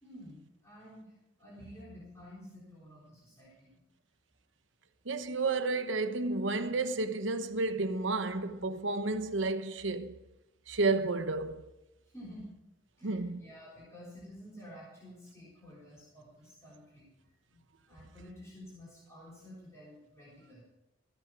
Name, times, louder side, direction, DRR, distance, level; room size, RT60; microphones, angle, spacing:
voice 1, 0.0-3.7 12.1-12.5 13.0-17.1 17.5-17.6 17.9-20.6, equal, 15° left, 3.8 m, -51 dB
voice 2, 5.0-10.2 10.7-11.7 13.0-13.4, right 3 dB, 85° right, 1.0 m, -31 dB
14.5 x 9.0 x 6.1 m
head